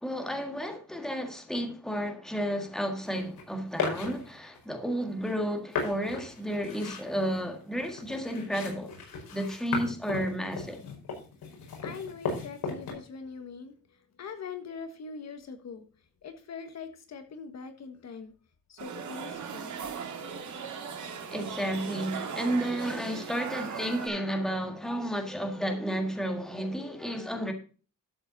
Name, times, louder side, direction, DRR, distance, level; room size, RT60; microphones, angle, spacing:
voice 1, 0.0-8.9 9.3-10.8 21.3-27.5, equal, ahead, 1.7 m, -32 dB
sound 1, 3.1-3.4 3.8-4.6 5.2-5.3 5.7-12.9, left 4 dB, 80° left, 5.0 m, -36 dB
voice 2, 11.5-13.7 14.2-15.8 16.2-18.3 18.7-19.7, left 5 dB, 45° left, 1.4 m, -42 dB
sound 2, 18.8-24.1, right 6 dB, 55° right, 2.2 m, -38 dB
12.0 x 7.7 x 3.9 m
wide cardioid pair, 180°, 35 cm